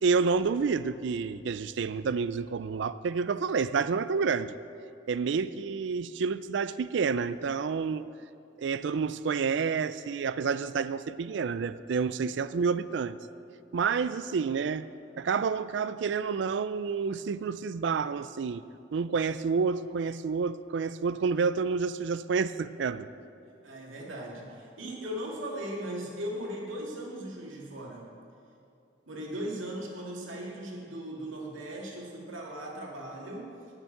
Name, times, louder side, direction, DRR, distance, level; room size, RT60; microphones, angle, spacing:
voice 1, 0.0-4.6 5.1-8.1 8.6-13.2 13.7-14.9 15.2-18.6 18.9-23.1, right 5 dB, 65° right, 15 dB, 0.4 m, -29 dB
voice 2, 23.6-28.1 29.1-33.5, right 1 dB, 90° right, -2 dB, 2.2 m, -38 dB
8.9 x 6.7 x 8.7 m, 2.5 s
head